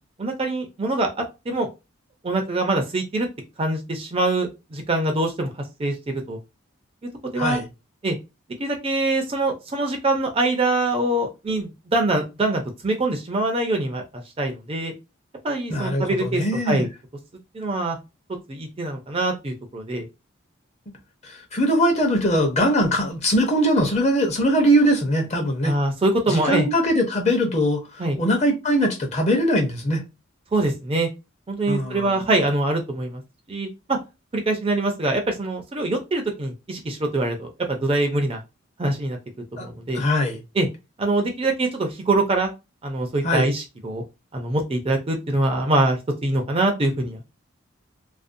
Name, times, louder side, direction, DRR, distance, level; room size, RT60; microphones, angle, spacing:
voice 1, 0.2-1.1 1.5-1.7 2.2-3.3 3.6-5.5 5.8-6.4 7.3-7.6 8.0-8.2 8.6-14.9 15.4-16.9 17.5-18.0 18.5-20.1 25.6-26.7 28.0-28.2 30.5-31.1 31.5-33.2 33.5-34.0 34.3-38.4 38.8-39.2 39.6-40.0 40.6-40.7 41.0-42.5 42.8-44.0 44.3-47.2, right 2 dB, 25° right, 0.4 m, -24 dB
voice 2, 15.7-16.9 21.2-25.7 26.3-30.0 31.7-32.2 39.6-39.7 39.9-40.4 43.2-43.5, equal, 30° left, 0.6 m, -21 dB
2.5 x 2.0 x 2.5 m
head